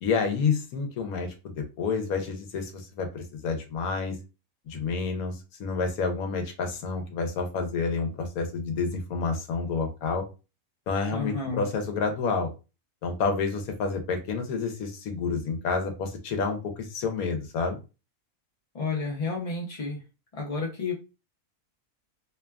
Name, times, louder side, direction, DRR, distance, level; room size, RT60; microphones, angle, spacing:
voice 1, 0.0-4.2 4.7-10.2 10.9-12.5 13.0-17.8, left 4 dB, 80° left, 5 dB, 1.1 m, -29 dB
voice 2, 11.1-11.6 18.7-20.0 20.3-20.9, left 4 dB, 45° left, -2 dB, 0.4 m, -31 dB
2.9 x 2.3 x 2.2 m, 0.30 s
omnidirectional pair, 1.5 m